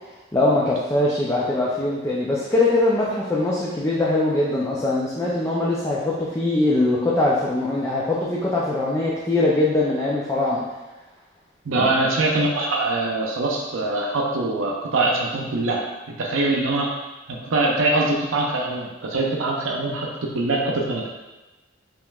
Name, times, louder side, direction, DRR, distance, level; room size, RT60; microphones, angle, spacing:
voice 1, 0.3-10.6 11.7-11.9, left 2 dB, 15° left, -6 dB, 0.4 m, -22 dB
voice 2, 11.6-15.8 16.2-16.9 17.3-21.1, right 2 dB, 80° right, -1 dB, 0.6 m, -23 dB
5.3 x 3.0 x 2.3 m, 1.1 s
head